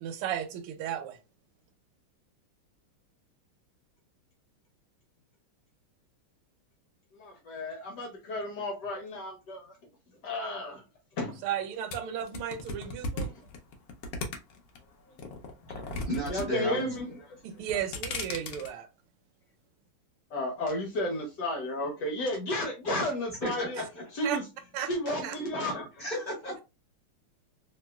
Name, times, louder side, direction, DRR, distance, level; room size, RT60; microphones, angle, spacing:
voice 1, 0.0-1.2 11.4-13.3 17.6-18.9 24.2-24.4 24.7-24.9 25.2-25.3, right 10 dB, 85° right, 1.5 m, -34 dB
voice 2, 7.1-9.7 10.2-10.8 11.2-11.4 16.3-17.3 20.3-23.8 24.1-24.4 24.8-26.0, left 1 dB, 70° left, 1.1 m, -33 dB
sound 1, 11.9-14.8 15.2-16.5 16.7-17.2 17.6-18.7, left 2 dB, 85° left, 0.8 m, -36 dB
voice 3, 15.6-16.9 23.4-24.0 26.0-26.6, equal, 30° left, 1.0 m, -34 dB
3.0 x 3.0 x 2.2 m
omnidirectional pair, 2.4 m